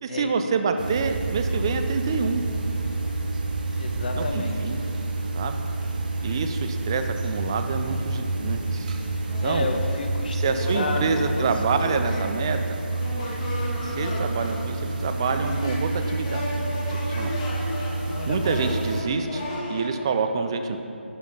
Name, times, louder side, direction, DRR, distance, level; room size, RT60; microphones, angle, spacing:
voice 1, 0.0-2.4 4.1-4.8 5.3-5.6 6.2-9.0 9.4-9.7 10.3-12.8 13.8-16.5 16.8-17.4 18.2-19.4 19.7-20.8, right 5 dB, 25° right, 7 dB, 0.5 m, -27 dB
sound 1, 0.8-19.0, right 2 dB, 40° right, 0.9 m, -29 dB
sound 2, 1.3-5.2 5.8-5.9 6.2-19.9, left 1 dB, 30° left, 1.5 m, -37 dB
voice 2, 3.8-4.6 9.4-12.0 18.1-18.5, left 3 dB, 45° left, 4 dB, 1.0 m, -31 dB
11.0 x 5.7 x 5.5 m, 2.7 s
hypercardioid pair, 170°, 7 cm